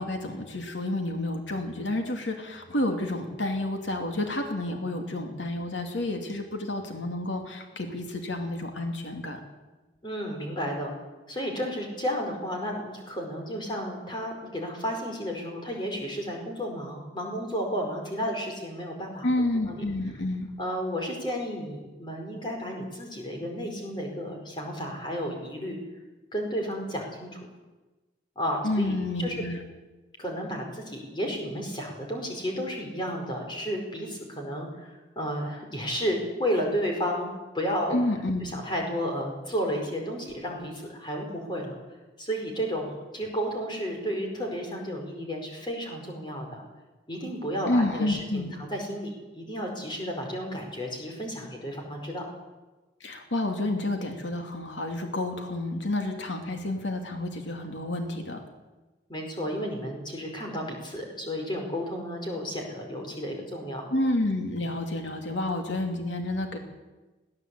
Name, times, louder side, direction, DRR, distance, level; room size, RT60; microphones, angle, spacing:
voice 1, 0.0-9.4 19.2-20.5 28.6-29.6 37.9-38.4 47.7-48.6 53.0-58.4 63.9-66.6, left 1 dB, 85° left, 4 dB, 2.8 m, -29 dB
voice 2, 10.0-10.9 11.3-19.3 19.7-19.8 20.6-25.8 26.3-27.4 28.3-29.4 30.2-37.3 37.5-38.0 38.4-41.7 42.2-46.6 47.1-52.3 59.1-63.9, equal, 25° left, 1 dB, 4.9 m, -32 dB
21.0 x 16.5 x 8.5 m, 1.2 s
head